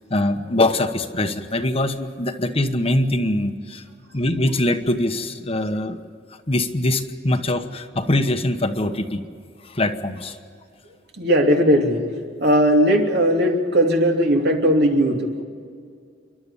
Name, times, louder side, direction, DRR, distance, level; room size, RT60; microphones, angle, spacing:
voice 1, 0.1-3.8 4.1-6.0 6.5-9.2 9.6-10.4, left 1 dB, 35° left, 7 dB, 1.2 m, -22 dB
voice 2, 11.2-12.1 12.4-15.4, equal, 60° right, 2 dB, 2.8 m, -18 dB
29.0 x 12.0 x 9.9 m, 2.2 s
head